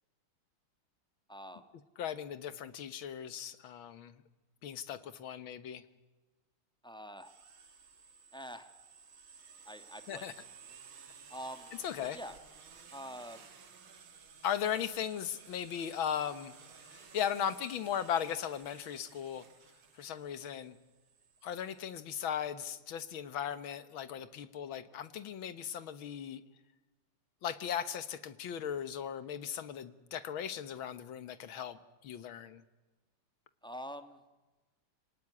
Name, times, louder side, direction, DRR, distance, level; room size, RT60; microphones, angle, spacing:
voice 1, 1.3-1.6 6.8-7.3 8.3-8.7 9.6-10.3 11.3-11.7 12.0-12.4 12.9-13.5 33.6-34.2, equal, 5° left, 8 dB, 0.9 m, -45 dB
voice 2, 2.0-4.2 4.6-5.8 10.1-10.3 11.8-12.2 14.4-16.5 16.9-19.4 20.0-20.8 21.4-26.4 27.4-32.6, left 9 dB, 65° left, 13 dB, 1.9 m, -37 dB
sound 1, 7.2-21.8, right 6 dB, 65° right, 2.7 m, -56 dB
25.0 x 18.5 x 9.8 m, 1.2 s
omnidirectional pair, 2.4 m